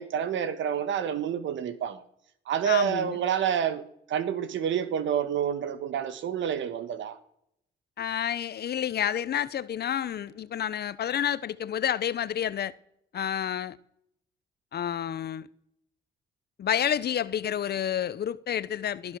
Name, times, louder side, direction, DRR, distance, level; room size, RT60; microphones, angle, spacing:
voice 1, 0.0-2.0 2.5-3.8 4.1-7.2, right 9 dB, 70° right, 1.4 m, -28 dB
voice 2, 2.6-3.2 8.0-12.7 13.1-13.8 14.7-15.5 16.6-19.2, left 9 dB, 55° left, 0.8 m, -29 dB
19.0 x 11.0 x 6.3 m
cardioid pair, 90°, 20 cm